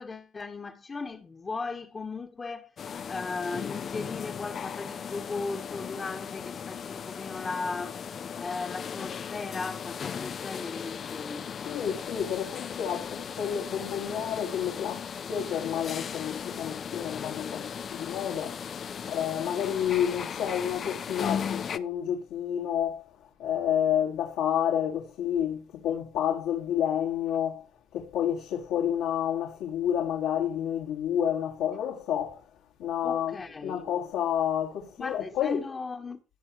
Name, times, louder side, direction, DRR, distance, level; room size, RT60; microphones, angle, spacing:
voice 1, 0.0-8.0 8.4-11.5 33.0-33.9 35.0-36.2, left 4 dB, 30° left, 1.4 m, -37 dB
sound 1, 2.8-21.8, left 7 dB, 45° left, 0.7 m, -37 dB
voice 2, 11.7-18.7 19.1-23.0 23.4-27.6 27.9-32.5 32.8-33.4 33.6-35.6, left 9 dB, 75° left, 2.1 m, -29 dB
17.0 x 5.8 x 3.1 m
supercardioid pair, 90°, 0 cm